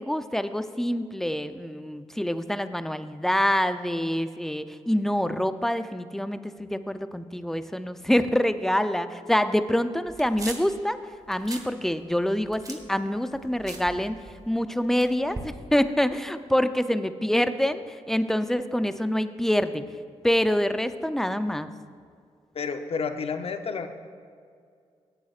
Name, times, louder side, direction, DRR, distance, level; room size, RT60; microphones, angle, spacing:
voice 1, 0.0-11.0 11.3-19.8 20.2-21.7, equal, 5° left, 11 dB, 0.5 m, -26 dB
sound 1, 10.1-10.8 11.2-11.7 12.0-14.6 15.0-15.5, right 2 dB, 30° right, 1.4 m, -40 dB
voice 2, 22.5-23.9, left 5 dB, 55° left, 8 dB, 0.7 m, -30 dB
17.0 x 8.8 x 2.5 m, 2.2 s
supercardioid pair, 50°, 12 cm